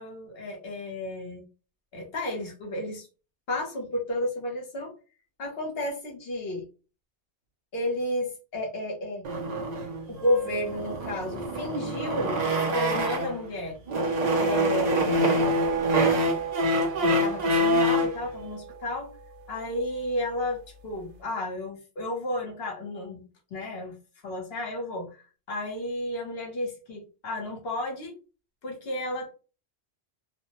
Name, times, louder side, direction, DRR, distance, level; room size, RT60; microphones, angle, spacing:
voice 1, 0.0-1.4 1.9-3.1 3.5-4.9 5.4-6.6 7.7-9.2 10.1-12.4 12.7-13.8 14.4-15.7 17.0-19.1 19.5-24.0 24.2-25.2 25.5-28.1 28.6-29.3, left 1 dB, 60° left, 2 dB, 1.1 m, -32 dB
sound 1, 9.2-13.5 13.9-18.2, equal, 50° right, 0.6 m, -26 dB
sound 2, 15.4-20.9, right 9 dB, 90° right, 0.9 m, -36 dB
2.5 x 2.1 x 2.8 m, 0.33 s
omnidirectional pair, 1.2 m